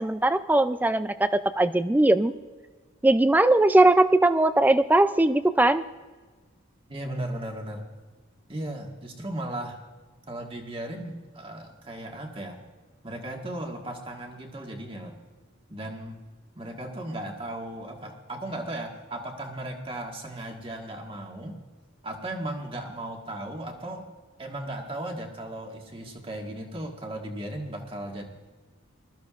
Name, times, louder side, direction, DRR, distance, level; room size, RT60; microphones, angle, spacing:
voice 1, 0.0-2.4 3.0-5.8, right 2 dB, 10° right, 12 dB, 0.3 m, -20 dB
voice 2, 6.9-7.8 8.5-9.8 10.3-12.6 13.0-15.2 15.7-16.2 16.5-21.5 22.0-24.1 24.4-28.2, right 1 dB, 25° right, 1 dB, 1.6 m, -36 dB
21.0 x 13.5 x 2.5 m, 1.4 s
head